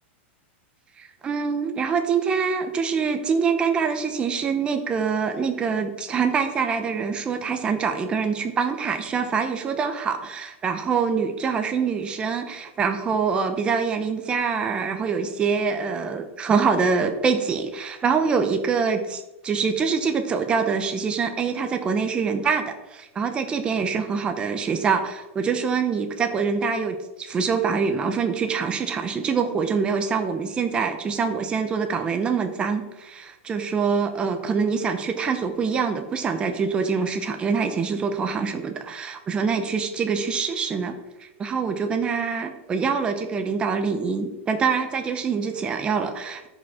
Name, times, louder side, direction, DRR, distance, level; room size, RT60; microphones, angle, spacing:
voice 1, 1.0-40.9 41.4-46.5, right 5 dB, 15° right, 7 dB, 0.7 m, -25 dB
13.5 x 5.1 x 3.7 m, 1.0 s
supercardioid pair, 165°, 7 cm